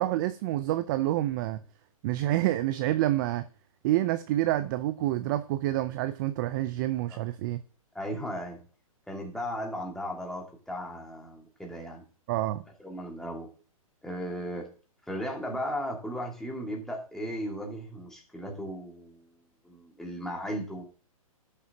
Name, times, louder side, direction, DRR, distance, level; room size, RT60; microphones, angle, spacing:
voice 1, 0.0-1.6 2.0-3.5 3.8-7.6 12.3-12.6, right 15 dB, 35° right, 0.5 m, -28 dB
voice 2, 7.9-8.6 9.1-12.0 12.8-13.5 14.0-14.7 15.1-19.4 19.6-20.8, equal, ahead, 1.9 m, -36 dB
12.0 x 6.7 x 2.8 m
hypercardioid pair, 140°, 19 cm